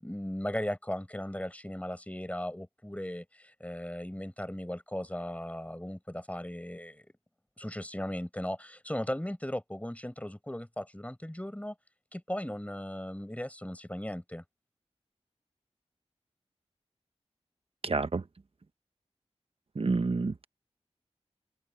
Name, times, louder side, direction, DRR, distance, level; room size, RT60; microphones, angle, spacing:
voice 1, 0.0-7.0 7.6-11.7 12.1-14.4, left 1 dB, 10° left, 6.1 m, -37 dB
voice 2, 17.8-18.2 19.8-20.4, right 3 dB, 60° right, 0.8 m, -29 dB
open air
wide cardioid pair, 45°, 11 cm